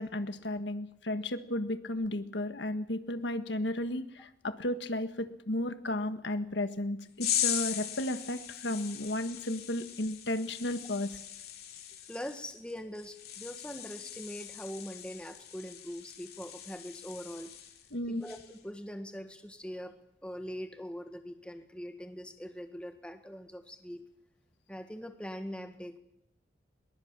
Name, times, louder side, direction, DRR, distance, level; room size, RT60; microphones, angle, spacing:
voice 1, 0.0-11.2 17.9-18.2, left 1 dB, 75° left, 9 dB, 1.5 m, -34 dB
sound 1, 7.2-17.9 18.2-18.6, left 10 dB, 55° left, 3.0 m, -39 dB
voice 2, 12.1-17.5 18.1-19.9 20.2-24.0 24.7-26.0, equal, 5° left, 6 dB, 1.5 m, -42 dB
21.5 x 21.0 x 7.4 m, 0.82 s
head